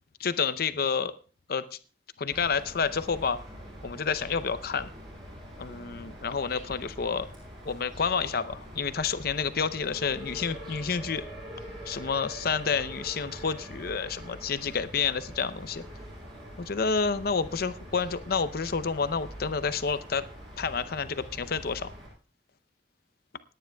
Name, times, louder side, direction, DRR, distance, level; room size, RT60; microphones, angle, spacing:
voice 1, 0.2-1.1 1.5-1.8 2.2-3.4 3.8-4.9 5.6-7.3 7.6-11.2 11.9-15.8 16.6-20.3 20.6-21.9, left 5 dB, 60° left, 14 dB, 0.6 m, -29 dB
sound 1, 2.3-22.1, equal, 30° right, 6.8 m, -44 dB
26.5 x 10.0 x 2.3 m, 0.37 s
head